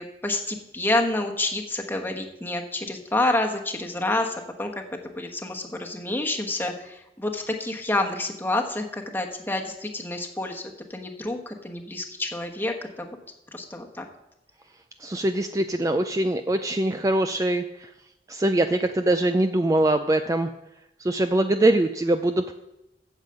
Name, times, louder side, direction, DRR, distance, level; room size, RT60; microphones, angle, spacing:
voice 1, 0.0-4.8 5.2-10.6 10.9-13.1 13.5-14.0, left 2 dB, 10° left, 2 dB, 1.1 m, -28 dB
voice 2, 15.0-17.9 18.3-20.5 21.0-22.5, right 1 dB, 20° right, 8 dB, 0.4 m, -23 dB
8.9 x 7.3 x 7.7 m, 0.90 s
head